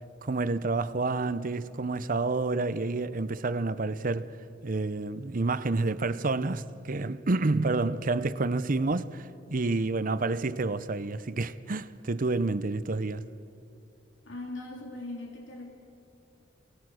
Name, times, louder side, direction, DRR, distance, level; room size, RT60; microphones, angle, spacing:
voice 1, 0.2-4.3 4.6-13.2, right 3 dB, 45° right, 0.7 m, -29 dB
voice 2, 14.2-15.7, left 2 dB, 85° left, 3.2 m, -39 dB
28.5 x 19.0 x 6.3 m
head